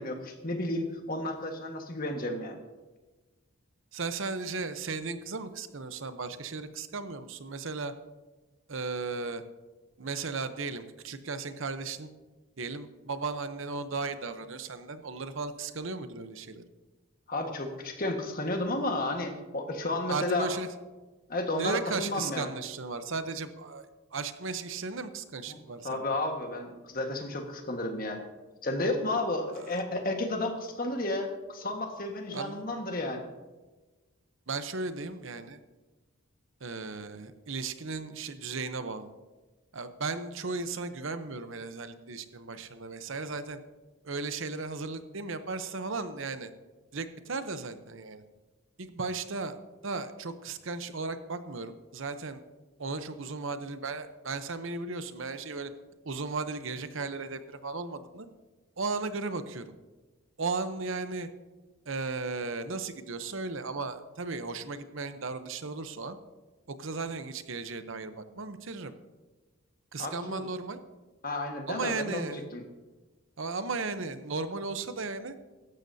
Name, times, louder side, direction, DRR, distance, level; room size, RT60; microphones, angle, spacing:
voice 1, 0.0-2.6 17.3-20.5 21.3-22.5 25.5-25.6 25.8-28.2 28.6-33.3 70.0-70.4 71.2-72.6, left 2 dB, 40° left, 3 dB, 1.6 m, -32 dB
voice 2, 3.9-7.9 8.7-9.4 10.0-12.1 12.6-16.6 20.1-20.7 21.5-26.0 29.5-29.7 32.3-32.6 34.5-35.6 36.6-39.1 39.7-43.6 44.0-46.5 46.9-48.2 48.8-49.6 49.8-52.4 52.8-55.7 56.0-58.3 58.8-59.6 60.4-61.3 61.9-66.2 66.7-68.9 69.9-70.8 71.7-72.5 73.4-75.3, right 4 dB, 65° right, 10 dB, 0.8 m, -36 dB
16.5 x 13.0 x 2.8 m, 1.2 s
head